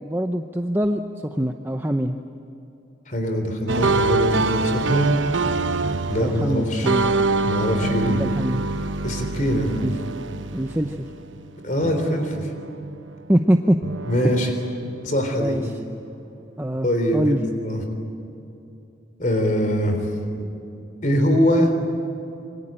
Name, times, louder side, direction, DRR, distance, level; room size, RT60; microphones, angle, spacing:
voice 1, 0.0-1.0 1.3-2.2 6.2-7.2 8.0-8.6 9.8-9.9 10.5-11.1 13.3-13.8 14.2-14.3 15.4-15.8 16.6-17.4, right 1 dB, 10° right, 5 dB, 0.7 m, -23 dB
voice 2, 3.1-5.1 6.1-6.9 7.4-8.2 9.0-9.7 11.6-12.5 14.1-14.5 15.0-15.6 16.8-17.4 17.6-17.8 19.2-20.0 21.0-21.7, equal, 40° left, 6 dB, 3.7 m, -22 dB
sound 1, 3.7-11.6 11.8-13.4 13.8-15.4, right 3 dB, 85° right, 1.0 m, -25 dB
27.0 x 24.0 x 8.9 m, 2.9 s
head